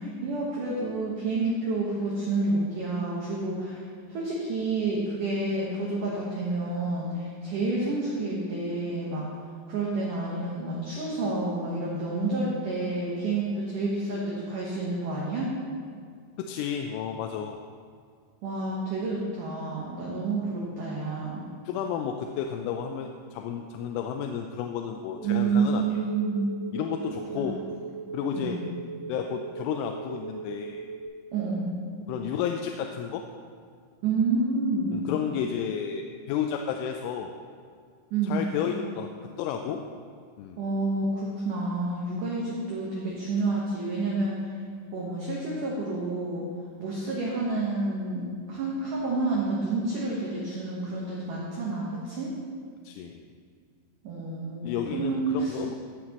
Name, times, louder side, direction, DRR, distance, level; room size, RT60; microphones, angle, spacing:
voice 1, 0.0-9.3 9.7-15.5 18.4-21.5 25.2-26.5 27.3-27.4 28.4-28.6 31.3-31.7 34.0-35.1 38.1-38.4 40.6-44.3 44.9-46.5 46.8-52.3 54.0-55.6, right 3 dB, 80° right, -5 dB, 1.8 m, -29 dB
voice 2, 16.4-17.6 21.7-25.8 26.7-27.6 28.1-28.6 29.1-30.9 32.1-33.2 34.9-37.3 38.3-39.1 39.4-39.8 40.4-40.6 52.8-53.2 54.6-55.8, left 8 dB, 90° left, 4 dB, 3.1 m, -32 dB
sound 1, 25.2-31.1, right 6 dB, 35° right, 2.9 m, -39 dB
15.5 x 7.4 x 3.0 m, 2.2 s
omnidirectional pair, 5.6 m